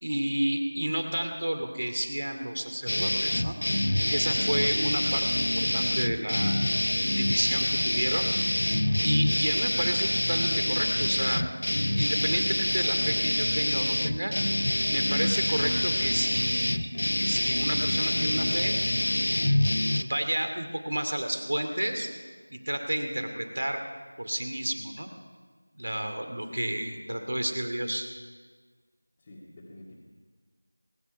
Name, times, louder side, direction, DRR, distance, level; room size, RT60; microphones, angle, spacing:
voice 1, 0.0-3.6 4.1-6.6 7.1-8.4 9.0-11.5 12.0-14.3 14.9-16.9 17.2-18.7 20.0-22.1 22.5-23.8 24.2-25.1 25.7-28.1, right 1 dB, 65° right, 6 dB, 2.4 m, -31 dB
sound 1, 2.9-20.0, left 1 dB, 65° left, 0.9 m, -26 dB
voice 2, 26.5-27.3 29.2-29.9, left 1 dB, 20° left, -8 dB, 2.1 m, -49 dB
21.5 x 11.5 x 5.7 m, 1.5 s
figure-of-eight pair, 175°, 0 cm